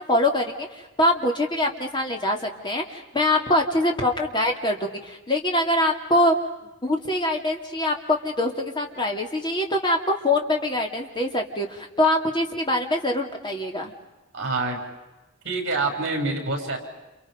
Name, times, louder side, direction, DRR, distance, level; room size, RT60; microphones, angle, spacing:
voice 1, 0.1-6.3 6.8-13.9, left 1 dB, 20° left, 2 dB, 2.9 m, -24 dB
voice 2, 14.3-14.8 15.4-16.8, right 3 dB, 55° right, 2 dB, 7.1 m, -26 dB
30.0 x 29.5 x 5.3 m, 1.1 s
head